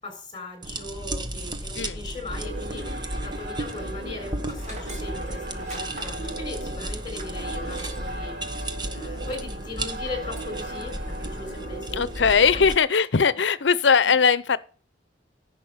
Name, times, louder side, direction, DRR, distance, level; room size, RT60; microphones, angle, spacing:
voice 1, 0.0-2.9 3.2-8.4 8.9-12.3, left 3 dB, 25° left, 6.4 m, -38 dB
sound 1, 0.6-12.8, right 1 dB, 25° right, 1.2 m, -34 dB
sound 2, 2.3-12.7, right 2 dB, 60° right, 2.2 m, -38 dB
Tools, 4.4-8.2 8.5-8.7 9.2-9.5 9.9-10.5, right 2 dB, 40° right, 3.3 m, -44 dB
voice 2, 11.9-14.6, left 6 dB, 80° left, 0.7 m, -20 dB
11.0 x 7.3 x 5.6 m
head